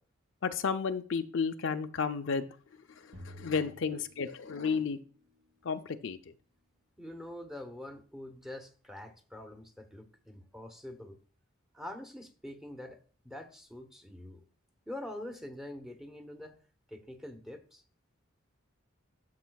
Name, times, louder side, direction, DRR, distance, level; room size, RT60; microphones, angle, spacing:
voice 1, 0.4-2.5 3.2-5.0 5.6-6.2, left 5 dB, 60° left, 7 dB, 0.5 m, -32 dB
sound 1, 3.1-4.9, left 1 dB, 90° right, 4.4 m, -51 dB
voice 2, 7.0-11.2 11.7-13.0 13.2-14.4 14.9-16.6 16.9-17.8, left 1 dB, ahead, 5 dB, 0.9 m, -45 dB
12.5 x 6.7 x 2.3 m, 0.41 s
head